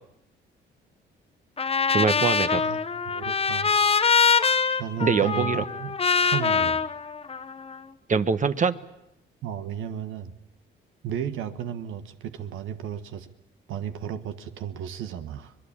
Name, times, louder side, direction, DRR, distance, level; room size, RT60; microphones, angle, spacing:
Trumpet, 1.6-7.8, left 5 dB, 30° left, 1.3 m, -24 dB
voice 1, 1.9-2.6 5.0-5.6 8.1-8.8, right 5 dB, 40° right, 12 dB, 1.2 m, -23 dB
voice 2, 2.6-3.7 4.8-6.0 6.2-6.8 9.4-10.3 11.0-13.3 13.7-15.5, right 9 dB, 85° right, 9 dB, 1.4 m, -34 dB
24.5 x 20.0 x 8.6 m, 0.80 s
cardioid pair, 90°, 20 cm